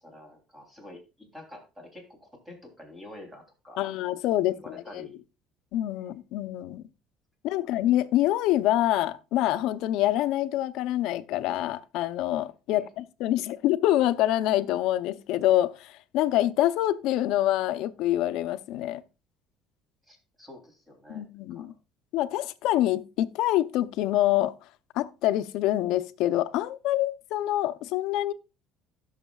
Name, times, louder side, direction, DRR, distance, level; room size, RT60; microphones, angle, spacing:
voice 1, 0.0-3.9 4.5-5.2 5.9-6.1 12.7-12.9 20.0-21.2 21.5-21.7, left 1 dB, 10° right, 3.2 m, -48 dB
voice 2, 3.8-5.1 5.7-6.8 7.4-19.0 21.1-21.7 22.1-24.5 24.9-28.3, left 14 dB, 70° left, 0.6 m, -26 dB
16.5 x 6.5 x 2.4 m
cardioid pair, 145°, 0 cm